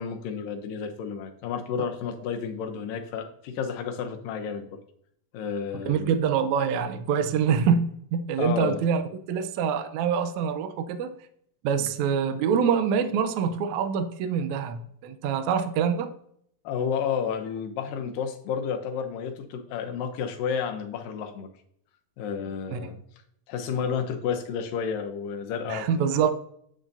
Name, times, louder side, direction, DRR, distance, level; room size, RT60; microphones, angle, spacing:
voice 1, 0.0-4.8 5.3-6.1 8.4-8.8 11.8-11.9 16.6-21.5 22.2-23.0 23.5-25.9, left 7 dB, 75° left, 5 dB, 2.5 m, -31 dB
voice 2, 5.7-9.0 9.3-11.1 11.6-16.1 22.7-22.9 25.7-26.3, right 7 dB, 85° right, 9 dB, 1.7 m, -25 dB
8.8 x 7.9 x 2.7 m, 0.67 s
omnidirectional pair, 4.1 m